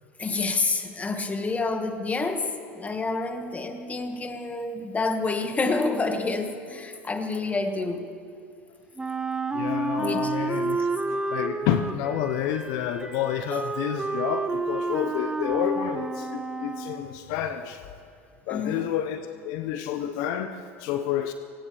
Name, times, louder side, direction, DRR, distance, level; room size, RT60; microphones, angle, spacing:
voice 1, 0.2-8.1 10.0-10.3 18.5-18.9, left 3 dB, 20° left, 6 dB, 1.7 m, -28 dB
Wind instrument woodwind instrument, 9.0-17.1, right 3 dB, 10° right, 1.1 m, -30 dB
voice 2, 9.5-17.8 18.5-21.3, left 10 dB, 60° left, 8 dB, 0.8 m, -29 dB
23.5 x 18.0 x 3.4 m, 2.4 s
hypercardioid pair, 85°, 7 cm